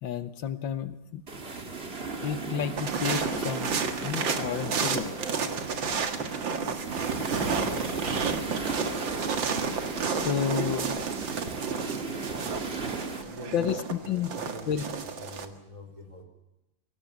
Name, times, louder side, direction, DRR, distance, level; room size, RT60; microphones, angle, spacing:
voice 1, 0.0-1.2 2.2-5.2 10.2-11.0 13.0-13.3 13.5-14.4 14.7-14.8, left 8 dB, 75° left, 12 dB, 1.9 m, -31 dB
sound 1, 1.3-13.2, right 3 dB, 30° right, 2.4 m, -35 dB
sound 2, 2.8-15.4, right 5 dB, 70° right, 2.5 m, -32 dB
voice 2, 13.1-13.8 14.0-16.2, equal, 15° right, 5 dB, 5.0 m, -45 dB
24.0 x 17.5 x 9.4 m, 0.92 s
omnidirectional pair, 2.1 m